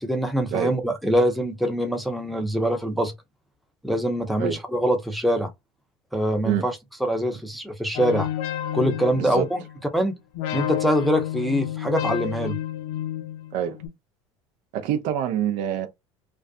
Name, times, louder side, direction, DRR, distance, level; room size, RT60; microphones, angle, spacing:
voice 1, 0.0-3.1 3.8-5.5 6.1-8.3 8.7-9.6 9.9-10.1 10.5-12.6, equal, ahead, 0.7 m, -24 dB
sound 1, 7.9-9.9 10.3-13.9, left 12 dB, 70° left, 0.5 m, -30 dB
voice 2, 9.1-9.5 13.5-13.8 14.7-15.9, right 10 dB, 60° right, 0.6 m, -25 dB
2.4 x 2.2 x 2.4 m
hypercardioid pair, 80°, 14 cm